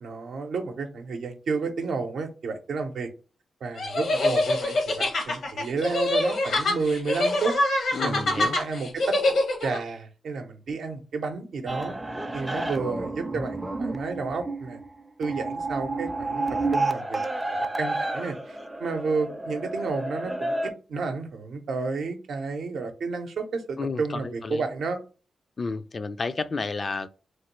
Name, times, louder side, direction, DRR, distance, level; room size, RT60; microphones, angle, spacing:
voice 1, 0.0-3.1 3.6-7.6 8.0-9.2 9.6-12.0 12.3-14.8 15.2-16.4 16.7-17.2 17.5-25.0, right 4 dB, 75° right, 0.6 m, -31 dB
sound 1, 3.8-9.8, left 2 dB, 75° left, 0.9 m, -25 dB
voice 2, 7.9-8.6 23.8-24.6 25.6-27.1, left 4 dB, 45° left, 0.3 m, -31 dB
sound 2, 11.7-20.7, right 2 dB, 15° right, 0.4 m, -30 dB
3.1 x 2.2 x 3.0 m
cardioid pair, 60°, 0 cm